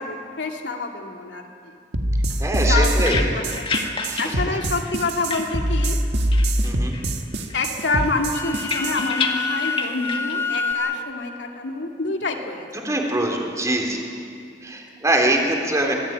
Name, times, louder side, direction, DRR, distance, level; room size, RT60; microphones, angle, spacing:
voice 1, 0.0-1.7 2.6-6.0 7.5-13.0 14.0-14.2, left 3 dB, 90° left, 2 dB, 2.6 m, -28 dB
sound 1, 1.9-9.0, right 1 dB, 70° right, 1.8 m, -23 dB
sound 2, 2.3-6.0 6.3-7.2 7.5-10.7, left 4 dB, 30° left, 1.9 m, -31 dB
voice 2, 2.4-3.2 4.1-4.2 6.6-6.9 12.8-14.1 14.6-15.9, right 1 dB, 20° right, 1 dB, 3.5 m, -23 dB
Wind instrument woodwind instrument, 8.1-11.0, left 4 dB, 15° left, 0.7 m, -27 dB
25.5 x 17.5 x 8.9 m, 2.3 s
head